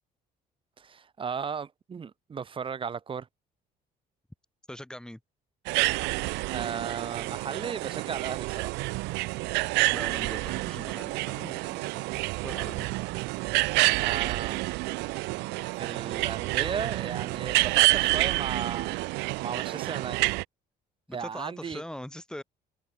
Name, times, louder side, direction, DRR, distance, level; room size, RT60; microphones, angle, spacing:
voice 1, 0.8-3.3 6.5-8.7 14.0-14.6 14.9-19.1 19.4-20.2 21.1-21.8, right 6 dB, 30° right, 1.1 m, -36 dB
voice 2, 4.7-5.2 9.9-13.0 21.1-22.4, left 1 dB, 5° left, 4.2 m, -42 dB
sound 1, 5.7-20.4, right 24 dB, 90° right, 0.4 m, -28 dB
cardioid pair, 110°, 17 cm